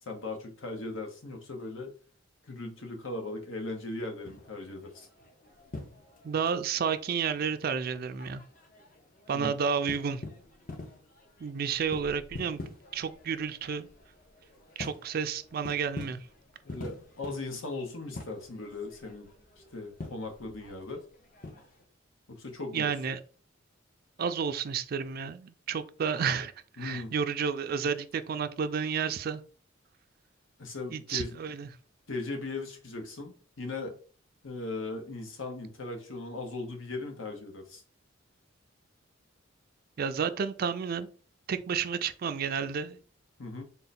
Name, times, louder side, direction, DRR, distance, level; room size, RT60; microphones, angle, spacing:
voice 1, 0.1-2.0 2.5-5.1 9.3-9.6 16.6-19.3 19.7-21.0 22.3-22.9 26.8-27.1 30.6-31.4 32.1-34.0 34.4-37.8 43.4-43.6, left 2 dB, 80° left, 1.0 m, -38 dB
sound 1, 4.2-21.8, left 2 dB, 45° left, 0.7 m, -47 dB
voice 2, 6.2-8.4 9.3-10.2 11.4-12.6 12.9-13.9 14.8-16.2 22.7-23.2 24.2-26.5 26.8-29.4 30.9-31.7 40.0-41.1 41.5-43.0, right 6 dB, 50° right, 0.3 m, -31 dB
3.8 x 2.2 x 4.1 m
head